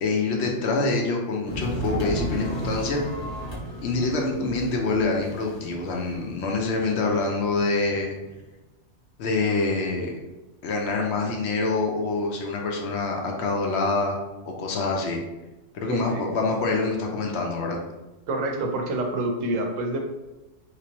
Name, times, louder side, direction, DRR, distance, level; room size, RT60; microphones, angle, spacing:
voice 1, 0.0-3.0 3.8-8.1 9.2-10.1 10.6-14.2 14.5-15.2 15.7-17.8, left 3 dB, 65° left, 1 dB, 0.8 m, -26 dB
sound 1, 1.5-8.3, equal, 30° left, 0.5 m, -35 dB
voice 2, 15.8-16.2 18.3-20.0, right 2 dB, 85° right, 3 dB, 1.0 m, -27 dB
3.3 x 2.9 x 2.9 m, 1.0 s
omnidirectional pair, 1.3 m